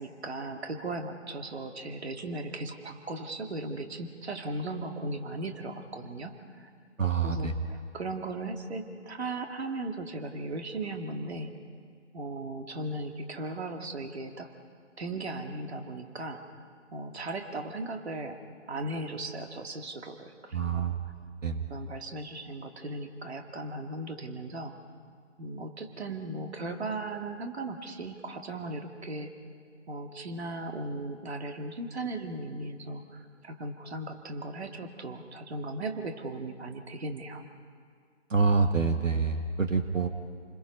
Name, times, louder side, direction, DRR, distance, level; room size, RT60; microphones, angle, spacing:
voice 1, 0.0-6.7 7.2-11.5 12.1-14.5 15.0-16.5 16.9-18.4 18.7-20.9 21.7-24.7 25.4-29.3 29.9-37.4, right 2 dB, 55° right, 4 dB, 2.3 m, -37 dB
voice 2, 7.0-7.5 20.5-21.0 21.4-21.6 38.3-40.1, right 4 dB, 85° right, 6 dB, 1.7 m, -26 dB
29.0 x 21.0 x 5.4 m, 2.1 s
figure-of-eight pair, 150°, 37 cm